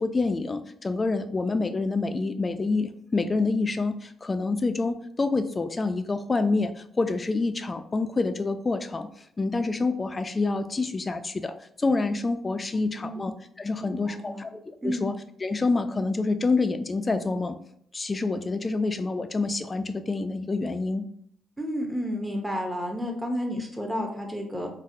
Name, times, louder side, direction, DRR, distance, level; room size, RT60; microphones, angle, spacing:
voice 1, 0.0-9.1 9.4-13.3 13.6-17.6 17.9-21.1, left 3 dB, 25° left, 9 dB, 0.3 m, -27 dB
voice 2, 12.9-13.2 13.8-14.4 14.8-15.1 21.6-24.7, equal, 10° right, 2 dB, 0.6 m, -31 dB
3.9 x 2.1 x 2.6 m, 0.65 s
cardioid pair, 90°, 0 cm